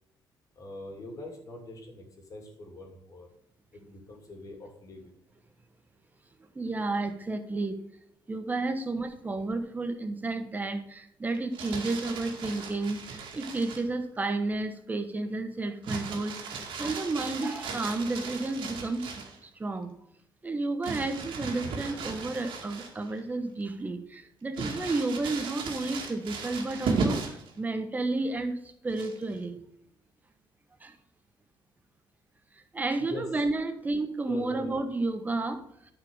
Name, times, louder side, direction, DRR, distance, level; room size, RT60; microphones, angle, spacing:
voice 1, 0.5-3.3 3.7-5.1 33.0-33.3 34.3-34.8, left 2 dB, 40° left, 2 dB, 2.8 m, -43 dB
voice 2, 6.5-7.8 8.3-19.1 19.4-19.9 20.4-28.6 28.8-29.6 30.8-30.9 32.7-35.6, right 2 dB, 20° right, 7 dB, 1.2 m, -31 dB
Crumpling crinkling, 11.3-13.9 15.8-19.4 20.8-23.2 23.6-23.7 24.5-27.5 28.9-29.4, right 4 dB, 70° right, 2.2 m, -36 dB
10.5 x 5.1 x 6.5 m, 0.72 s
cardioid pair, 125°, 9 cm